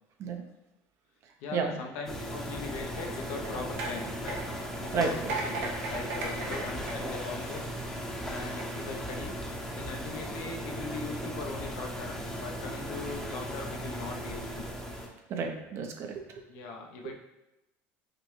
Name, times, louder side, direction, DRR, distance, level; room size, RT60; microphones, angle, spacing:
voice 1, 1.4-4.4 4.8-5.2 5.4-7.6 8.3-9.4 9.7-14.7 16.5-17.2, left 4 dB, 75° left, 1 dB, 0.7 m, -40 dB
sound 1, 2.1-15.1, equal, 5° left, 0.7 m, -37 dB
sound 2, 3.0-7.8 8.4-8.7, right 2 dB, 80° right, 0.8 m, -38 dB
voice 2, 4.9-5.3 15.3-16.4, right 5 dB, 50° right, 4 dB, 0.6 m, -32 dB
5.0 x 2.2 x 3.1 m, 0.95 s
supercardioid pair, 115°, 6 cm